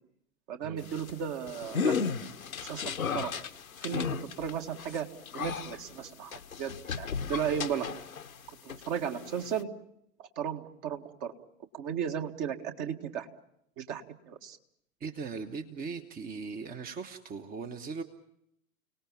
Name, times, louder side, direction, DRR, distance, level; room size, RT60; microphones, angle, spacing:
voice 1, 0.5-1.9 2.6-3.3 3.8-5.1 5.3-7.9 8.6-9.7 10.2-11.3 11.7-13.3 13.8-14.0 14.3-14.6, right 8 dB, 40° right, 5 dB, 2.0 m, -35 dB
sound 1, 0.8-8.4 8.7-9.6, left 6 dB, 80° left, 1.1 m, -35 dB
voice 2, 15.0-18.0, right 5 dB, 20° right, 8 dB, 1.1 m, -39 dB
30.0 x 18.5 x 7.1 m, 0.76 s
figure-of-eight pair, 90°, 41 cm